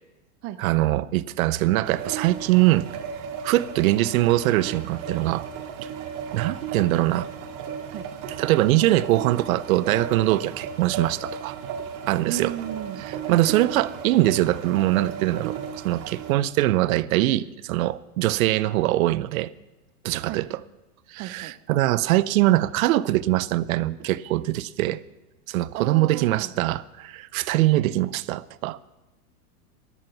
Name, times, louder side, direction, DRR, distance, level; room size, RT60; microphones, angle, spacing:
voice 1, 0.6-2.9 3.4-5.5 6.3-7.3 8.4-11.5 12.1-12.5 13.3-15.6 15.8-19.5 20.0-20.6 21.1-25.0 25.5-28.8, right 16 dB, 65° right, 0.7 m, -22 dB
sound 1, 1.8-16.3, right 7 dB, 45° right, 2.1 m, -35 dB
voice 2, 12.2-13.4 20.2-20.4 21.2-21.5 24.0-24.1 25.7-26.5, right 13 dB, 30° right, 0.5 m, -34 dB
14.5 x 11.0 x 5.9 m
supercardioid pair, 140°, 45 cm